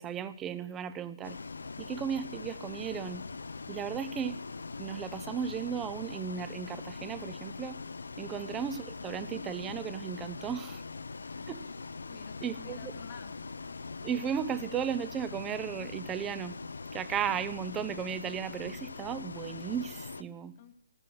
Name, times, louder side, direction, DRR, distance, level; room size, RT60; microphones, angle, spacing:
voice 1, 0.0-1.4 1.8-3.2 3.7-4.4 4.8-7.8 8.2-10.8 11.5-11.6 12.4-12.9 14.0-16.6 16.9-20.5, right 8 dB, 15° right, 14 dB, 0.6 m, -35 dB
Bus, 1.2-20.2, left 4 dB, 60° left, 0.5 m, -42 dB
voice 2, 12.0-13.5 20.6-20.7, left 9 dB, 30° left, 7 dB, 0.9 m, -51 dB
15.0 x 9.8 x 6.3 m, 0.67 s
figure-of-eight pair, 135°, 0 cm